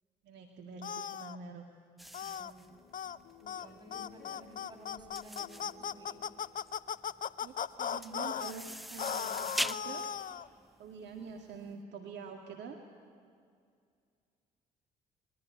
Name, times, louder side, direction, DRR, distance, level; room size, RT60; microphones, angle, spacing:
voice 1, 0.2-1.7 7.4-10.0 10.8-12.8, right 5 dB, 55° right, 2 dB, 2.1 m, -46 dB
sound 1, 0.8-1.4 2.1-2.5 2.9-3.2 3.5-3.7 3.9-8.5 9.0-10.5, left 8 dB, 40° left, 0.7 m, -37 dB
sound 2, 2.0-11.6, equal, ahead, 0.6 m, -43 dB
voice 2, 2.2-2.9 3.6-6.2, equal, 20° right, 3 dB, 6.6 m, -54 dB
sound 3, 2.7-9.3, left 6 dB, 60° left, 3.2 m, -58 dB
26.0 x 22.0 x 9.0 m, 2.2 s
hypercardioid pair, 50°, 21 cm